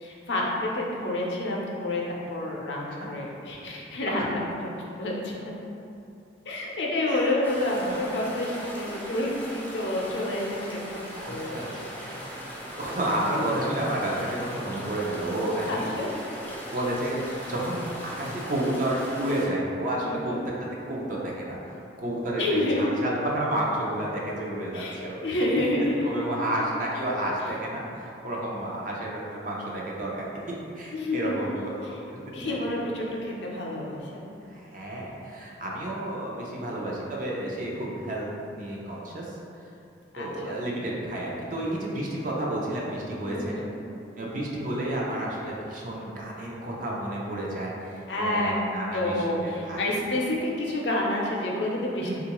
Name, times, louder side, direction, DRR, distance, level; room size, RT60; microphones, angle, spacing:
voice 1, 0.0-2.0 2.3-4.7 5.0-5.5 6.5-11.0 11.3-11.9 13.3-13.5 15.6-16.1 20.0-20.4 22.4-22.9 24.7-26.3 30.9-31.6 32.3-34.3 40.1-40.6 43.3-43.7 48.1-48.5 48.9-52.2, left 1 dB, 70° left, -3 dB, 0.6 m, -29 dB
voice 2, 7.1-7.4 7.8-8.0 11.1-11.7 12.0-12.3 12.7-15.9 16.7-17.2 17.5-25.4 26.0-30.4 30.8-32.2 32.4-32.9 34.5-39.4 40.2-43.5 44.2-49.8 52.0-52.2, right 1 dB, 45° right, -3 dB, 0.5 m, -31 dB
sound 1, 7.4-19.5, equal, 10° left, 0.4 m, -39 dB
3.7 x 2.4 x 2.9 m, 2.6 s
head